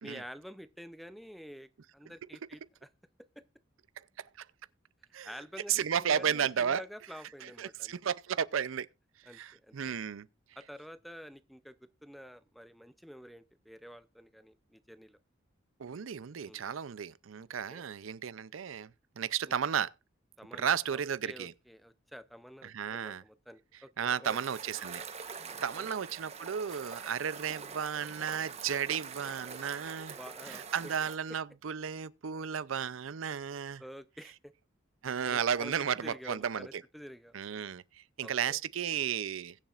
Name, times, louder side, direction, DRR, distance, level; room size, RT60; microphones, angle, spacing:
voice 1, 0.0-2.6 3.4-3.5 5.2-7.9 9.3-9.9 10.6-11.8 12.0-15.2 16.5-16.6 17.7-17.8 19.5-19.6 20.4-24.4 25.5-25.9 30.1-30.9 33.8-34.3 35.2-35.7 36.0-37.3 38.2-38.6, equal, ahead, 0.5 m, -49 dB
voice 2, 5.7-6.8 7.4-8.9 9.2-10.3 15.8-18.9 19.2-19.9 20.5-21.5 22.6-23.2 24.0-25.0 25.6-30.2 30.5-33.8 35.0-36.8 37.3-39.6, right 8 dB, 90° right, 0.5 m, -33 dB
sound 1, 24.2-31.2, right 5 dB, 35° right, 1.0 m, -44 dB
21.5 x 7.2 x 2.5 m
head